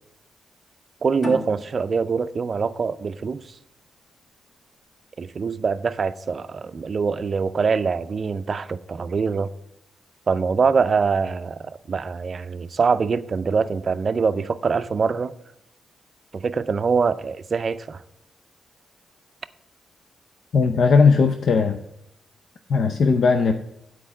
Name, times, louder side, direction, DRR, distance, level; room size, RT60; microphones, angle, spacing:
voice 1, 1.0-3.4 5.2-9.5 10.3-15.3 16.3-18.0, right 5 dB, 45° right, 0.4 m, -24 dB
sound 1, 1.2-4.4, left 1 dB, 50° left, 1.8 m, -37 dB
voice 2, 20.5-21.8 22.7-23.5, left 5 dB, 70° left, 0.5 m, -17 dB
8.7 x 4.5 x 6.8 m
cardioid pair, 90°, 0 cm